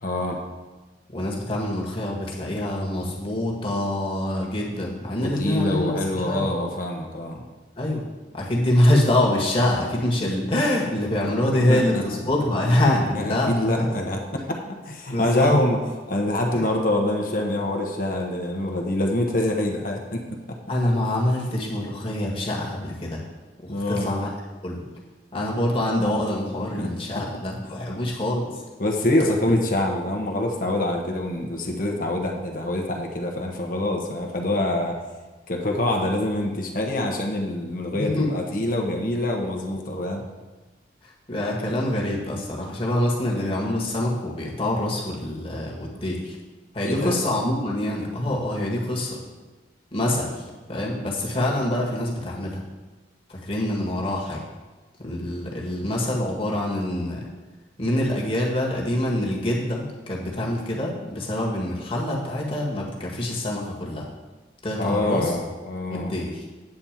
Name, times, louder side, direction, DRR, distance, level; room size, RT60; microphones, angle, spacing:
voice 1, 0.0-0.4 5.2-7.4 11.7-12.0 12.5-12.6 13.1-15.8 16.1-20.2 20.5-20.6 23.7-24.1 26.8-26.9 27.1-27.2 28.8-35.0 35.5-40.2 46.8-47.2 64.8-66.1, left 1 dB, 45° left, 1 dB, 1.1 m, -25 dB
voice 2, 1.1-6.5 7.8-8.0 8.3-13.9 15.1-15.6 20.7-23.2 23.6-24.3 24.6-24.8 25.3-28.6 29.5-29.6 37.9-38.3 41.0-46.3 46.7-49.2 49.9-52.6 53.3-54.4 55.0-57.3 57.8-64.1 64.6-65.3 65.9-66.4, left 1 dB, 30° left, -2 dB, 1.6 m, -25 dB
8.9 x 4.2 x 7.4 m, 1.2 s
head